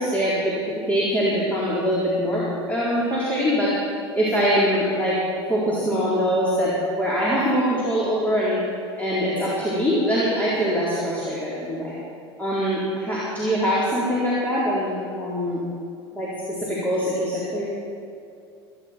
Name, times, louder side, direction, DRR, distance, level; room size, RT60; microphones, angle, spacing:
voice 1, 0.0-3.7 4.1-5.2 5.5-8.6 9.0-11.9 12.4-15.6 16.1-16.3 16.6-17.7, equal, 10° left, -9 dB, 4.2 m, -23 dB
24.5 x 10.5 x 4.6 m, 2.5 s
hypercardioid pair, 80°, 14 cm